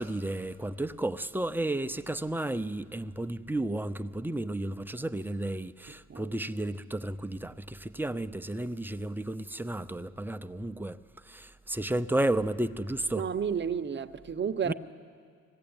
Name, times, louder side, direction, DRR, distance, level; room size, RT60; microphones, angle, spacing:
voice 1, 0.0-11.0 11.3-13.2 14.7-14.8, right 1 dB, 5° right, 0.6 m, -32 dB
voice 2, 13.2-14.7, right 7 dB, 35° right, 0.8 m, -31 dB
21.0 x 15.5 x 8.8 m
cardioid pair, 90°, 30 cm